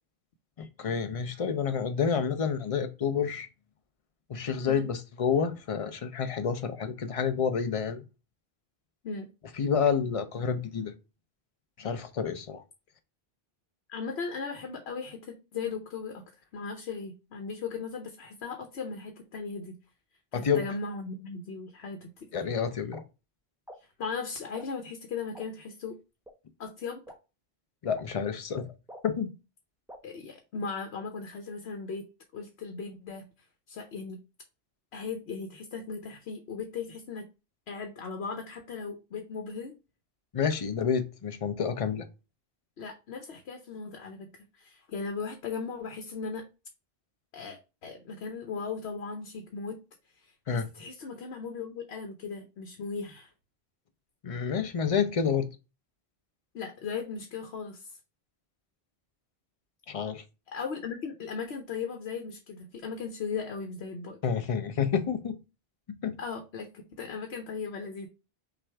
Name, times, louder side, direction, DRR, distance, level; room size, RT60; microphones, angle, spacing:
voice 1, 0.6-3.5 4.3-8.0 9.5-10.9 11.8-12.6 20.3-20.6 22.3-23.0 27.8-28.7 29.0-29.3 40.3-42.0 50.5-50.7 54.2-55.5 59.9-60.2 64.2-65.4 66.0-66.1, left 6 dB, 40° left, 0.6 m, -29 dB
voice 2, 13.9-16.2 16.5-19.8 20.3-22.3 24.0-26.0 26.6-27.0 30.0-32.1 32.3-33.3 33.7-34.2 34.9-37.3 37.7-39.7 42.8-46.4 47.3-49.8 50.2-53.3 56.5-58.0 60.5-64.2 66.2-68.1, left 5 dB, 85° left, 1.0 m, -37 dB
sound 1, 22.9-23.0 23.7-23.8 24.5-24.7 25.3-25.5 26.2-26.3 27.1-27.2 27.9-28.0 28.9-29.0 29.9-30.0, equal, 5° right, 0.6 m, -45 dB
5.9 x 2.5 x 3.4 m
omnidirectional pair, 1.0 m